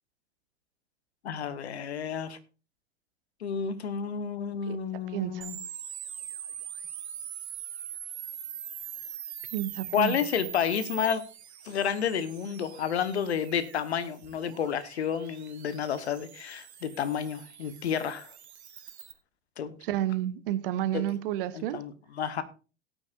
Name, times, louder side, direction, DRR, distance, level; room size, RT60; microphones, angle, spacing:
voice 1, 1.2-2.4 3.4-5.6 9.9-11.2 11.6-18.3 19.6-19.8 20.9-21.1 21.5-22.4, left 8 dB, 65° left, 14 dB, 1.2 m, -30 dB
voice 2, 5.1-5.5 9.5-10.2 19.8-21.8, right 13 dB, 50° right, 14 dB, 1.0 m, -30 dB
sound 1, 5.4-19.1, right 9 dB, 65° right, 1.5 m, -43 dB
18.0 x 9.0 x 2.5 m, 0.34 s
figure-of-eight pair, 85°, 35 cm